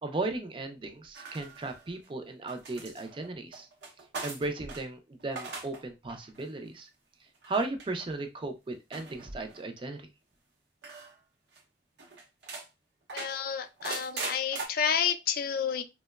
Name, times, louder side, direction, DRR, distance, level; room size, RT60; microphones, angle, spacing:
voice 1, 0.0-3.7 4.2-6.9 7.5-10.1, right 2 dB, 30° right, 0.3 m, -36 dB
sound 1, 1.1-2.1 2.5-4.8 5.2-5.8 6.1-6.5 7.4-7.9 8.9-9.6 10.8-11.1 11.5-11.6 12.0-12.7 13.1-14.7, right 3 dB, 70° right, 0.6 m, -40 dB
voice 2, 13.1-15.8, left 8 dB, 55° left, 0.3 m, -30 dB
2.9 x 2.0 x 2.2 m
head